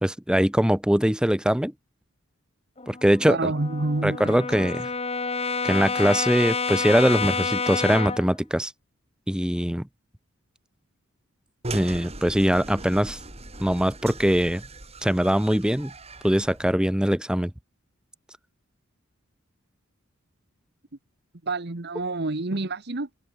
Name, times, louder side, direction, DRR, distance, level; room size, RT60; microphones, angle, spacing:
voice 1, 0.0-1.7 2.9-3.5 4.0-4.9 5.6-8.7 9.3-9.8 11.7-13.2 13.6-14.6 15.0-15.9 16.2-17.5, equal, 5° right, 0.8 m, -22 dB
Brass instrument, 2.8-8.3, left 4 dB, 30° left, 1.9 m, -29 dB
voice 2, 3.3-4.7 21.4-23.1, right 2 dB, 55° right, 1.3 m, -28 dB
sound 1, 11.6-16.7, right 2 dB, 30° right, 6.5 m, -39 dB
open air
head